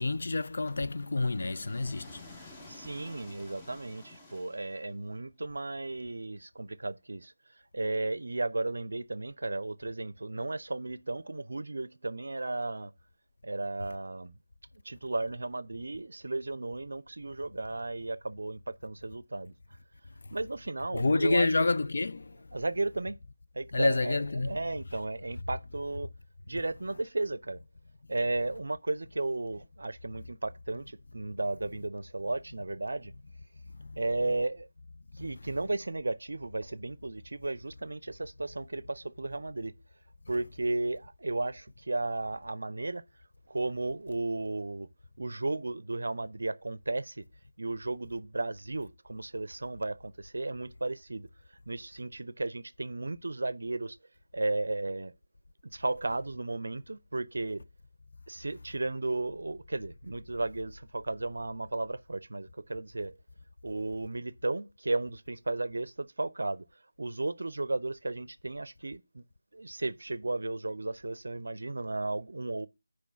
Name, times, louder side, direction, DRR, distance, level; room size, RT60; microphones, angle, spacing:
voice 1, 0.0-2.5 20.9-22.5 23.7-24.6 33.8-34.0 35.2-35.3, left 3 dB, 45° left, 0.4 m, -29 dB
sound 1, 0.7-5.1, left 2 dB, 10° left, 0.8 m, -51 dB
voice 2, 2.7-7.3 7.7-12.9 13.4-14.3 14.8-19.5 20.3-21.5 22.5-23.2 23.5-26.1 26.5-27.6 28.1-33.1 34.0-34.7 35.2-39.7 40.3-43.0 43.5-44.9 45.2-47.2 47.6-51.3 51.7-54.0 54.3-55.1 55.6-57.6 58.3-63.2 63.6-66.7 67.0-69.2 69.5-72.7, right 2 dB, 55° right, 0.6 m, -34 dB
6.0 x 4.9 x 6.8 m
figure-of-eight pair, 160°, 0 cm